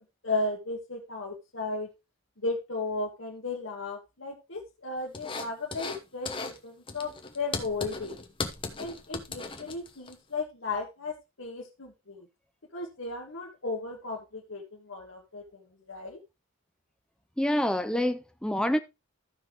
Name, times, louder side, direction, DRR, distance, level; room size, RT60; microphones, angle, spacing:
voice 1, 0.2-1.9 2.4-8.2 8.8-12.3 12.7-16.2, left 3 dB, 70° left, 1.7 m, -35 dB
sound 1, 5.1-6.0 6.3-6.6 6.9-10.1, left 3 dB, 25° left, 1.0 m, -37 dB
voice 2, 17.4-18.8, left 1 dB, 5° left, 0.5 m, -27 dB
14.5 x 5.8 x 3.0 m
head